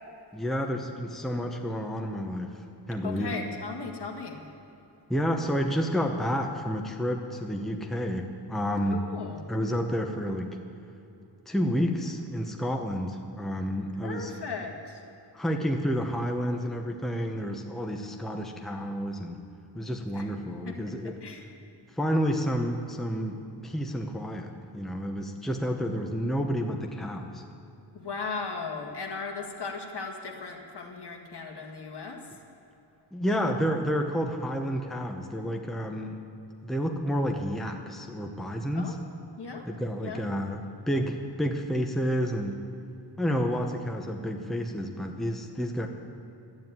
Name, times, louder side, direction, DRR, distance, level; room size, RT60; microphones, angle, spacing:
voice 1, 0.3-2.6 2.9-3.4 5.1-9.0 9.5-10.6 11.5-14.3 15.3-19.4 19.7-21.1 21.9-27.4 33.1-36.2 36.6-39.0 39.7-42.6 43.2-45.9, equal, ahead, 2 dB, 0.9 m, -30 dB
voice 2, 3.0-4.4 8.9-9.5 14.0-15.0 20.1-20.3 20.7-20.8 21.0-21.5 27.9-32.3 38.7-39.0 39.4-39.7 40.0-40.3, left 4 dB, 60° left, 2 dB, 1.9 m, -37 dB
12.5 x 9.1 x 9.2 m, 2.9 s
wide cardioid pair, 140°, 44 cm